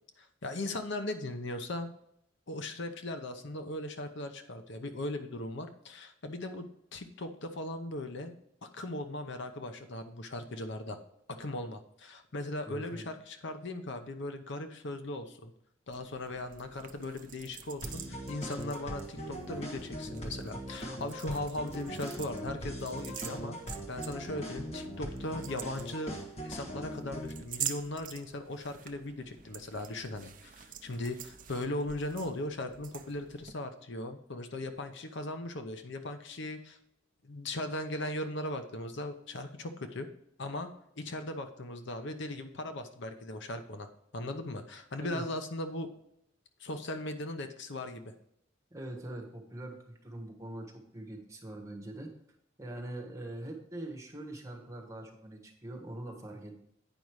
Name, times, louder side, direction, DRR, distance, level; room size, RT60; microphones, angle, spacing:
voice 1, 0.2-1.9 2.5-6.7 6.9-8.3 8.6-11.0 11.4-15.5 15.9-23.6 23.9-36.8 37.2-40.1 40.4-40.7 41.0-45.9 46.6-48.1, left 1 dB, 65° left, 7 dB, 0.8 m, -38 dB
voice 2, 12.6-13.1 45.0-45.2 48.7-52.1 52.6-56.6, right 1 dB, 15° right, 1 dB, 1.5 m, -43 dB
sound 1, 15.9-33.5, right 10 dB, 45° right, 0.6 m, -47 dB
sound 2, 17.8-27.4, equal, 35° left, 1.4 m, -41 dB
9.1 x 5.3 x 4.7 m, 0.73 s
head